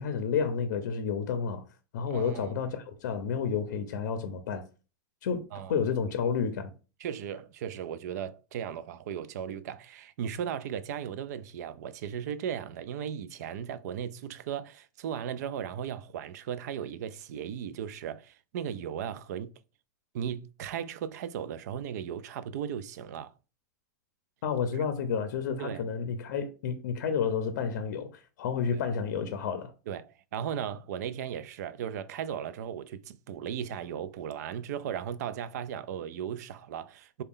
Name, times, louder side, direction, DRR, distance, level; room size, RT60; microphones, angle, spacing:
voice 1, 0.0-1.6 1.9-4.6 5.2-6.7 24.4-29.7, left 6 dB, 75° left, 0.5 m, -30 dB
voice 2, 2.1-2.6 5.5-5.8 7.0-19.5 20.1-23.3 24.7-24.9 25.6-25.8 28.7-28.8 29.9-37.2, right 9 dB, 65° right, 0.4 m, -36 dB
3.9 x 2.2 x 3.6 m
supercardioid pair, 180°, 10 cm